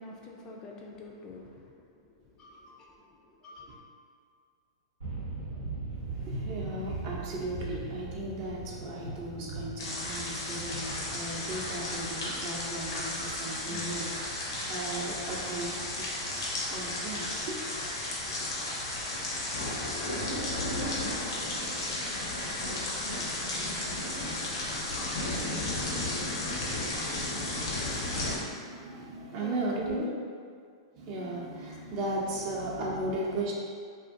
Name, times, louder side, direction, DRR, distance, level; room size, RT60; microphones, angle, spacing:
voice 1, 0.0-3.8 29.3-30.2 32.9-33.1, left 2 dB, 30° left, -1 dB, 0.4 m, -45 dB
sound 1, 5.0-16.5, right 3 dB, 90° right, 0.7 m, -41 dB
voice 2, 6.2-17.6 17.9-18.0 27.6-30.1 30.9-33.5, right 1 dB, 50° right, -3 dB, 0.6 m, -36 dB
sound 2, 9.8-28.4, left 1 dB, 75° left, 0.7 m, -34 dB
2.5 x 2.5 x 2.5 m, 2.1 s
hypercardioid pair, 105°, 2 cm